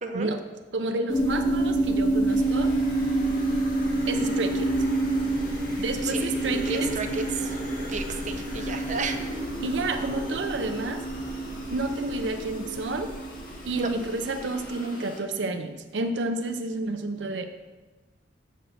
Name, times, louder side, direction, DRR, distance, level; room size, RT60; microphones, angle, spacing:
voice 1, 0.7-2.7 4.1-4.8 5.8-6.9 9.6-11.0 11.7-13.1 13.6-17.4, right 2 dB, 75° right, 7 dB, 0.6 m, -30 dB
sound 1, 1.1-14.5, right 2 dB, 25° left, 2.6 m, -28 dB
sound 2, 2.3-15.2, left 1 dB, 50° left, 1.8 m, -41 dB
voice 2, 6.0-6.3 6.7-7.6 7.9-9.4 13.8-13.9, right 4 dB, 40° right, 5 dB, 0.7 m, -32 dB
7.7 x 6.5 x 6.6 m, 1.2 s
head